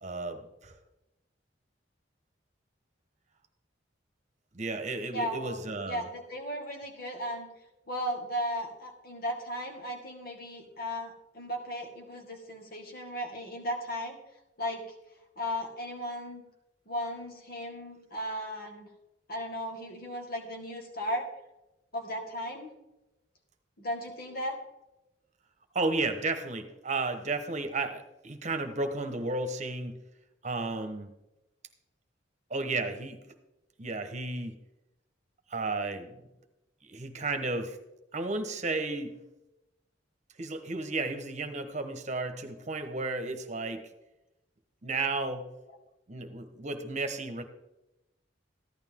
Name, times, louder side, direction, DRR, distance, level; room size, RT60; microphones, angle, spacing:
voice 1, 0.0-0.7 4.5-6.1 25.7-30.0 30.4-31.1 32.5-33.2 33.8-34.5 35.5-36.2 36.9-37.8 38.1-39.1 40.4-43.8 44.8-45.4 46.1-47.4, right 3 dB, 40° right, 7 dB, 1.1 m, -33 dB
voice 2, 5.1-7.5 7.9-14.2 14.6-14.8 15.4-16.4 16.9-18.9 19.3-21.3 21.9-22.7 23.8-24.6, equal, 55° left, 2 dB, 2.1 m, -36 dB
14.5 x 11.5 x 3.7 m, 0.94 s
head